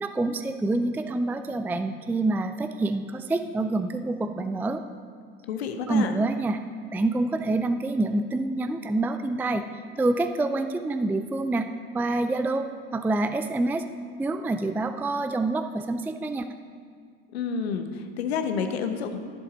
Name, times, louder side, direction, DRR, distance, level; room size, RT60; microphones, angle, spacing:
voice 1, 0.0-4.8 5.9-6.6 6.9-9.6 10.0-11.7 11.9-12.7 12.9-13.8 14.2-16.5, right 2 dB, 5° right, 8 dB, 0.4 m, -26 dB
voice 2, 5.5-6.2 17.3-19.2, left 6 dB, 90° left, 7 dB, 0.9 m, -29 dB
11.0 x 10.0 x 3.9 m, 2.1 s
hypercardioid pair, 80°, 31 cm